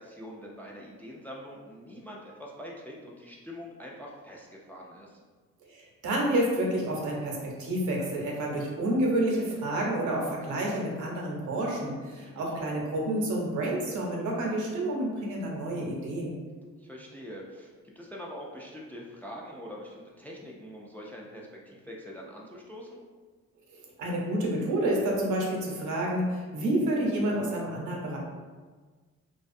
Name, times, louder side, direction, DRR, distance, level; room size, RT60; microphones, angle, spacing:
voice 1, 0.0-5.2 12.1-12.6 16.8-23.0, equal, 5° left, -3 dB, 0.3 m, -44 dB
voice 2, 5.7-16.4 23.7-28.2, right 1 dB, 75° right, -2 dB, 0.7 m, -29 dB
2.4 x 2.2 x 2.5 m, 1.4 s
cardioid pair, 90°, 30 cm